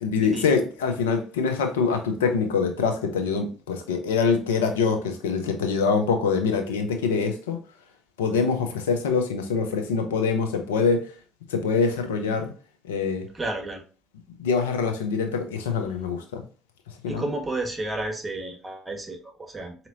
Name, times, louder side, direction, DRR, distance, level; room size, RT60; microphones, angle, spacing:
voice 1, 0.0-7.6 8.2-11.1 11.5-12.5 12.9-13.2 14.4-16.4 17.0-17.2, left 5 dB, 85° left, 0.5 m, -24 dB
voice 2, 13.3-13.8 17.1-19.9, right 2 dB, 20° right, 1.1 m, -32 dB
4.1 x 2.8 x 2.5 m
hypercardioid pair, 60°, 0 cm